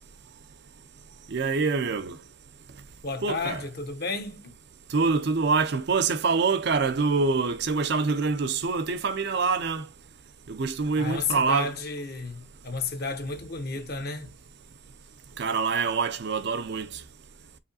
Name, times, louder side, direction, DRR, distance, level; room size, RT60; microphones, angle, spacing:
voice 1, 1.3-2.2 3.2-3.6 4.9-9.9 10.5-11.7 15.4-17.0, right 4 dB, 55° right, 0.5 m, -25 dB
voice 2, 3.0-4.5 11.0-14.3, left 4 dB, 50° left, 0.8 m, -32 dB
4.8 x 3.1 x 2.5 m
head